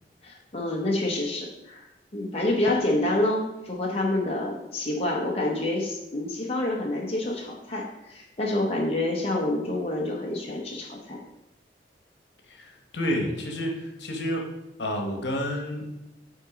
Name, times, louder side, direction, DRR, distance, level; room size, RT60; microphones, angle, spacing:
voice 1, 0.2-1.9 2.1-11.2, left 1 dB, 35° left, -2 dB, 0.8 m, -27 dB
voice 2, 12.5-14.5 14.8-16.1, equal, 70° left, 2 dB, 1.1 m, -30 dB
5.3 x 3.8 x 4.9 m, 0.90 s
head